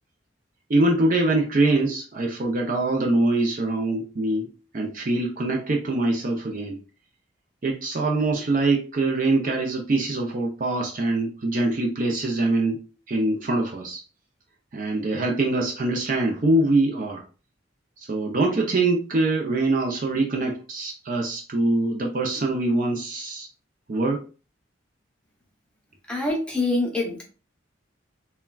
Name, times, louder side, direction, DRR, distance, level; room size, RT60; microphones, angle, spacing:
voice 1, 0.7-4.5 4.7-6.8 7.6-12.8 13.1-14.0 14.7-17.2 18.1-23.5 23.9-24.3, right 2 dB, 40° right, 1 dB, 0.4 m, -23 dB
voice 2, 26.1-27.2, left 2 dB, 5° left, -1 dB, 0.7 m, -25 dB
3.4 x 2.2 x 2.3 m, 0.35 s
head